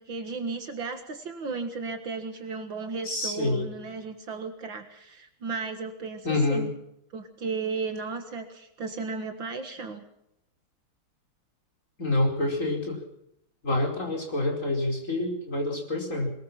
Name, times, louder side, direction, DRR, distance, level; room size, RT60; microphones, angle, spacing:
voice 1, 0.0-6.7 7.1-10.0, right 4 dB, 65° right, 6 dB, 2.5 m, -35 dB
voice 2, 3.0-3.7 6.2-6.7 12.0-13.0 13.6-16.3, left 2 dB, 35° left, 0 dB, 5.3 m, -27 dB
22.0 x 21.5 x 5.9 m, 0.78 s
omnidirectional pair, 2.3 m